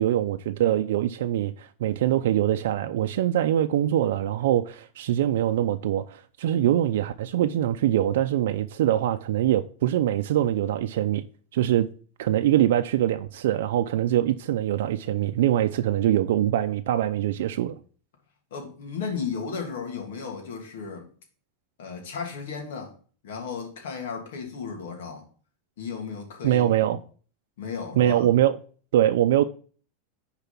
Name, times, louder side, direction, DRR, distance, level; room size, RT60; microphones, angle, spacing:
voice 1, 0.0-11.2 11.5-11.9 12.2-17.8 26.4-27.0 28.0-28.6 28.9-29.4, right 12 dB, 80° right, 0.5 m, -23 dB
voice 2, 18.5-21.1 21.8-22.9 23.2-25.2 25.8-27.0 27.6-28.3, left 5 dB, 80° left, 2.8 m, -34 dB
6.8 x 4.9 x 5.9 m
supercardioid pair, 160°, 0 cm